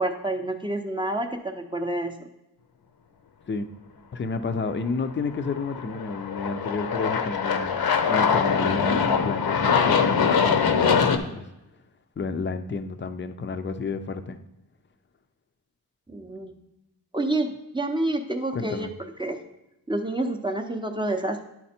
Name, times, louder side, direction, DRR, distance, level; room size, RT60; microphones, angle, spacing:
voice 1, 0.0-2.2 16.1-16.5 17.1-18.9 19.2-19.4 19.9-21.4, right 1 dB, 10° right, 4 dB, 0.6 m, -28 dB
voice 2, 4.1-7.8 8.1-11.5 12.2-14.4 18.5-18.9, left 4 dB, 30° left, 9 dB, 0.5 m, -30 dB
Aircraft, 5.4-11.2, left 6 dB, 65° left, 0.7 m, -23 dB
10.0 x 4.2 x 4.3 m, 0.91 s
wide cardioid pair, 115°, 39 cm